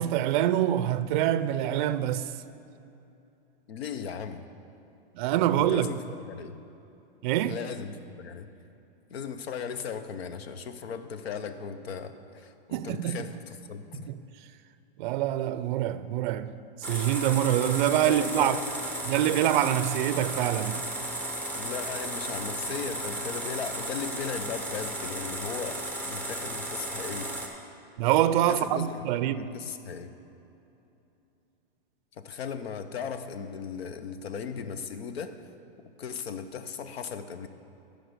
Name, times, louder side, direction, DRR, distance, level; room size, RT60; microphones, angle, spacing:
voice 1, 0.0-2.4 5.2-5.9 7.2-7.6 12.7-13.3 14.0-14.2 15.0-16.6 16.9-18.6 19.0-20.9 28.0-29.5, right 12 dB, 55° right, 0.4 m, -25 dB
voice 2, 3.7-4.4 5.5-6.6 7.4-8.5 9.1-14.1 18.0-18.6 21.5-27.3 28.5-30.1 32.1-35.5 36.0-37.5, left 6 dB, 85° left, 0.8 m, -37 dB
sound 1, 16.8-27.5, right 1 dB, 5° left, 0.8 m, -34 dB
11.5 x 5.1 x 6.7 m
hypercardioid pair, 140°, 30 cm